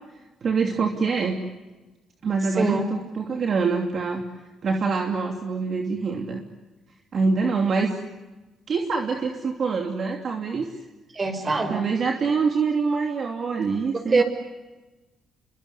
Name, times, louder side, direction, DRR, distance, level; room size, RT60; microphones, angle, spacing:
voice 1, 0.4-1.4 2.2-4.2 4.6-6.4 7.1-8.0 8.7-10.7 11.7-14.2, right 4 dB, 50° right, 2 dB, 2.9 m, -25 dB
voice 2, 11.2-11.9 14.1-14.2, right 3 dB, 30° right, 9 dB, 5.6 m, -22 dB
29.0 x 23.5 x 8.3 m, 1.1 s
cardioid pair, 95°, 0 cm